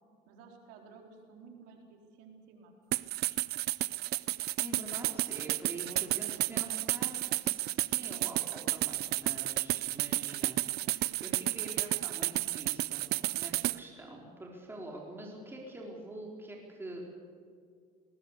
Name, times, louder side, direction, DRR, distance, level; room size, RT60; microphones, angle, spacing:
voice 1, 0.3-3.0 5.8-7.1, right 5 dB, 90° right, 2 dB, 4.3 m, -54 dB
sound 1, 2.9-13.8, right 17 dB, 65° right, 0.6 m, -32 dB
voice 2, 4.6-13.0 13.3-17.0, right 1 dB, 10° right, -1 dB, 4.1 m, -46 dB
20.0 x 20.0 x 8.3 m, 2.1 s
cardioid pair, 115°, 18 cm